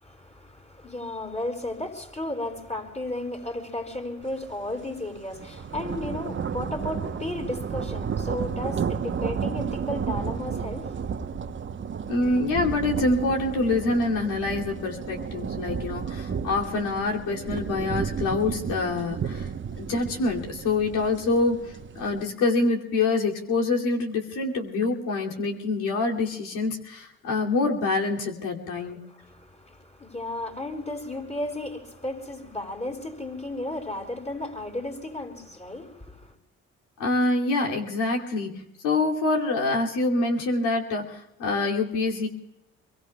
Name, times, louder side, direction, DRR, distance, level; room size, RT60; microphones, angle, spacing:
voice 1, 0.0-11.3 29.1-36.3, left 1 dB, 20° left, 4.6 m, -34 dB
sound 1, 4.4-4.6 5.0-22.2, right 6 dB, 40° right, 1.0 m, -32 dB
voice 2, 12.1-19.5 19.8-29.0 37.0-42.3, left 3 dB, 80° left, 2.7 m, -26 dB
25.5 x 23.0 x 2.3 m
supercardioid pair, 60°, 31 cm